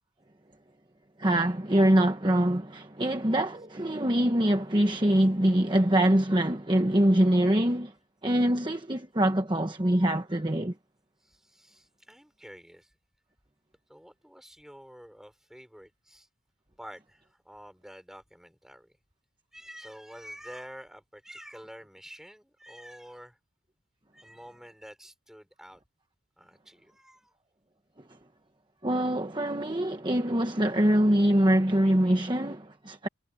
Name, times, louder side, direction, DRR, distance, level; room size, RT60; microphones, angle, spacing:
voice 1, 1.2-7.9 8.2-10.7 28.8-33.1, right 1 dB, 25° right, 1.2 m, -24 dB
voice 2, 11.2-13.0 13.9-16.3 16.8-19.0 19.5-23.4 24.1-25.8 26.4-27.3, equal, ahead, 5.5 m, -48 dB
head